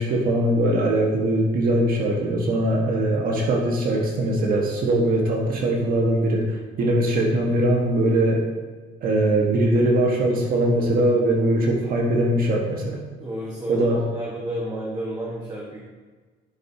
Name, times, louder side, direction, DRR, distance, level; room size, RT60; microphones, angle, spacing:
voice 1, 0.0-6.4 6.8-8.4 9.0-13.0 13.7-14.0, right 1 dB, 60° right, -1 dB, 1.4 m, -21 dB
voice 2, 13.2-15.8, right 1 dB, 25° right, -4 dB, 1.4 m, -31 dB
10.0 x 6.4 x 2.8 m, 1.4 s
cardioid pair, 110°, 17 cm